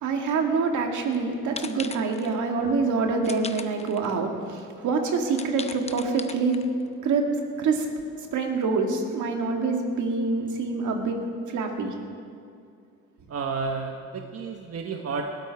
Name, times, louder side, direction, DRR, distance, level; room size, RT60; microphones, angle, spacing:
voice 1, 0.0-6.6 7.0-7.3 7.6-7.9 8.3-11.9, right 4 dB, 75° right, 2 dB, 2.1 m, -26 dB
sound 1, 1.0-1.2 1.6-2.4 3.2-4.2 4.6-4.7 5.3-6.9, left 4 dB, 20° left, 0.8 m, -39 dB
voice 2, 13.3-15.3, right 4 dB, 55° right, 3 dB, 1.1 m, -31 dB
20.0 x 13.0 x 4.7 m, 2.3 s
cardioid pair, 90°, 30 cm